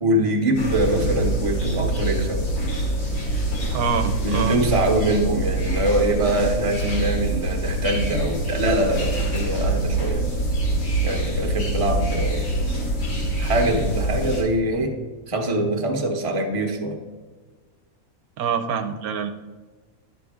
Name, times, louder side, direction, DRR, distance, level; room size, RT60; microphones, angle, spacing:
voice 1, 0.0-2.4 4.2-10.2 11.0-12.5 13.4-15.0 15.3-17.0, right 1 dB, 25° right, 3 dB, 0.9 m, -23 dB
sound 1, 0.5-14.4, right 1 dB, 90° left, 2.5 m, -25 dB
voice 2, 3.7-4.6 18.4-19.3, right 7 dB, 80° right, 7 dB, 1.1 m, -25 dB
11.0 x 6.4 x 3.5 m, 1.4 s
omnidirectional pair, 1.6 m